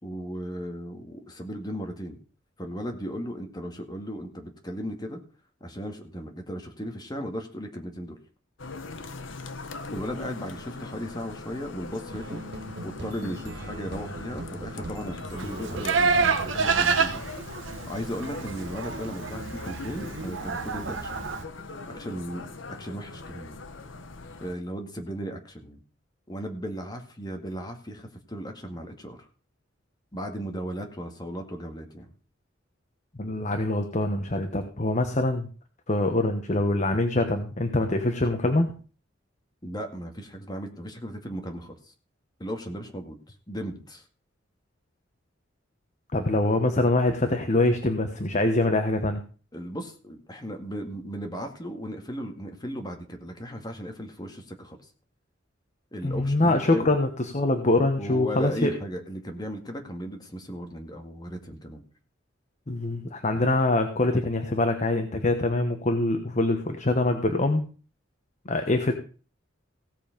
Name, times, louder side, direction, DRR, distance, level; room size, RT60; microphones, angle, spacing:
voice 1, 0.0-2.2 2.6-5.2 5.6-8.2 9.9-12.4 12.8-17.3 17.9-21.2 21.9-22.4 22.7-23.6 24.4-25.8 26.3-29.2 30.1-32.1 39.6-41.7 42.4-43.2 43.5-44.0 49.5-54.8 55.9-56.9 58.0-61.8 63.3-63.4, equal, 20° left, 4 dB, 2.1 m, -36 dB
sound 1, 8.6-24.5, left 3 dB, 80° left, 1.1 m, -41 dB
sound 2, 12.1-17.1, right 2 dB, 65° right, 1.0 m, -39 dB
Livestock farm animals working animals, 15.4-21.4, right 5 dB, 85° right, 1.2 m, -28 dB
voice 2, 33.2-35.5 35.9-38.7 46.1-49.2 56.0-58.7 62.7-67.6 68.4-68.9, left 2 dB, 40° left, 6 dB, 1.2 m, -24 dB
16.5 x 7.1 x 5.3 m, 0.39 s
head